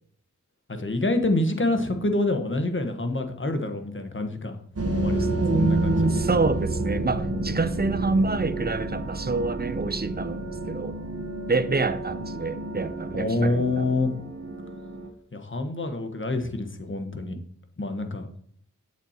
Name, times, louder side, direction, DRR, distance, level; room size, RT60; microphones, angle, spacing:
voice 1, 0.8-4.6 4.9-5.9 13.1-14.1 15.3-17.4 17.8-18.3, left 2 dB, 40° left, 1.3 m, -27 dB
sound 1, 4.8-15.1, right 2 dB, 50° right, 1.0 m, -30 dB
voice 2, 5.4-11.0 11.5-13.9, right 3 dB, 30° right, 0.6 m, -26 dB
8.1 x 7.2 x 2.9 m
cardioid pair, 50°, 31 cm